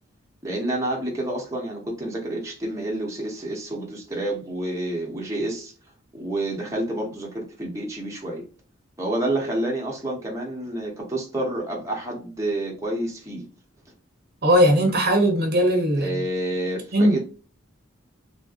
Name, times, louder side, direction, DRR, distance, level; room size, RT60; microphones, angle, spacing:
voice 1, 0.4-5.7 6.1-8.5 9.0-13.5 16.0-17.2, right 1 dB, 15° right, 0.8 m, -29 dB
voice 2, 14.4-16.2 16.9-17.2, equal, 50° right, 0.8 m, -19 dB
3.4 x 2.6 x 2.4 m
head